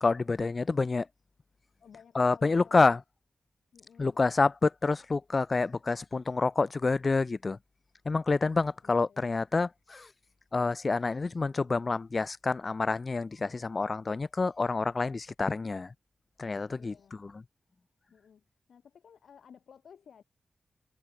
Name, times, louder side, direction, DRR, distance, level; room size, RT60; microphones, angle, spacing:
voice 1, 0.0-1.1 2.2-3.0 4.0-7.6 8.1-10.1 10.5-15.9 16.4-16.9 17.2-17.3, left 3 dB, 45° left, 0.5 m, -28 dB
voice 2, 1.8-3.0 3.7-4.2 8.8-9.3 16.8-17.2 18.1-18.4 18.7-20.2, left 7 dB, 85° left, 3.9 m, -56 dB
cardioid pair, 60°, 0 cm